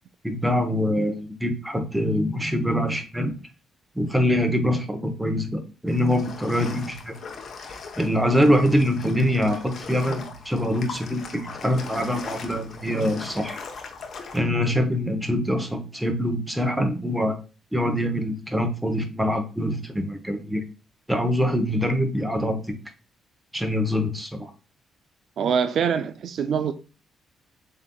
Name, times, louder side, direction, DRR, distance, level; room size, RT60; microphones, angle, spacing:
voice 1, 0.2-3.3 3.9-7.1 8.0-13.6 14.3-17.4 17.7-20.6 21.1-22.7 23.5-24.5, equal, 5° right, 0.9 m, -24 dB
sound 1, 5.9-14.4, left 4 dB, 55° left, 0.8 m, -39 dB
voice 2, 25.4-26.7, right 7 dB, 65° right, 0.3 m, -24 dB
7.1 x 2.8 x 2.3 m
cardioid pair, 90°, 0 cm